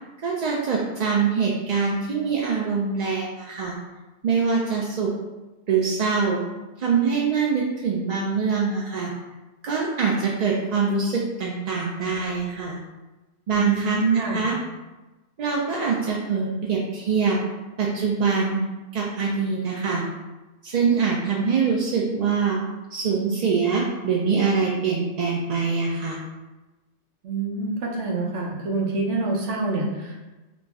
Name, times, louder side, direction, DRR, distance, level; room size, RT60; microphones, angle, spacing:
voice 1, 0.2-3.7 4.2-5.1 5.7-6.4 6.8-9.1 9.6-12.8 13.5-14.6 15.4-17.4 17.8-18.6 18.9-20.0 20.6-22.6 22.9-26.2, right 5 dB, 60° right, -3 dB, 0.4 m, -24 dB
voice 2, 13.5-14.5 27.2-30.3, right 3 dB, 90° right, -2 dB, 1.1 m, -27 dB
3.0 x 2.6 x 3.4 m, 1.1 s
omnidirectional pair, 1.2 m